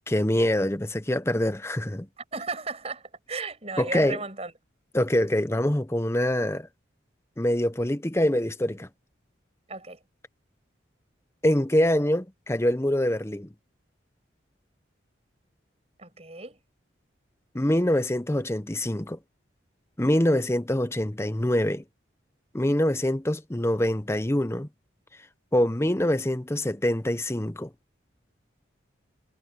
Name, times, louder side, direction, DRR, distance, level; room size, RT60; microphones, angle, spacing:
voice 1, 0.1-2.1 3.8-4.2 4.9-6.7 7.4-8.9 11.4-13.5 17.5-19.2 20.0-21.8 22.5-24.7 25.5-27.7, left 1 dB, 15° left, 0.8 m, -25 dB
voice 2, 2.3-4.5 9.7-10.0 16.0-16.6, right 4 dB, 35° right, 7.1 m, -35 dB
head